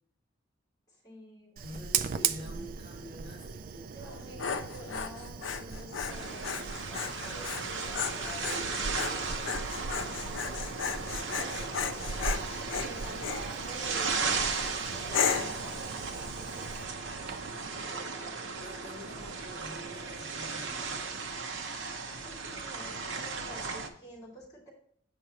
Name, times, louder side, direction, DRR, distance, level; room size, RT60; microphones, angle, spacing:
voice 1, 0.9-2.0 2.7-2.9 3.9-14.4 14.9-16.8 17.6-18.1 19.2-19.3 22.0-24.7, equal, 20° left, -3 dB, 2.6 m, -49 dB
voice 2, 1.6-4.0 4.3-4.6 18.5-21.0, equal, 25° right, -4 dB, 1.7 m, -47 dB
Fire, 1.6-17.7, right 6 dB, 45° right, 0.3 m, -39 dB
Dog, 4.0-13.5 14.0-14.4 15.1-15.6, left 6 dB, 75° left, 0.6 m, -35 dB
sound 1, 6.1-23.9, right 4 dB, 75° right, 0.8 m, -36 dB
7.9 x 5.7 x 2.9 m, 0.64 s
head